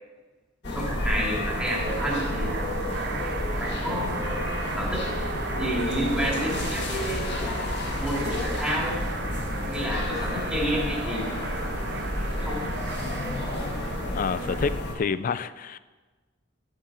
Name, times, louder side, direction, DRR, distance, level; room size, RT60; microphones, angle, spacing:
sound 1, 0.6-14.9, left 1 dB, 60° left, 1.5 m, -30 dB
voice 1, 0.6-2.8 3.6-5.1 5.5-7.3 8.0-9.1 9.7-11.4 12.4-12.7, equal, 5° right, -4 dB, 2.7 m, -30 dB
sound 2, 1.2-14.8, right 5 dB, 55° right, 0.6 m, -37 dB
Wind instrument woodwind instrument, 2.5-7.9 8.4-14.3, equal, 85° left, 3.2 m, -47 dB
voice 2, 14.1-15.8, left 5 dB, 45° left, 15 dB, 0.4 m, -28 dB
12.0 x 7.6 x 4.3 m, 1.3 s
head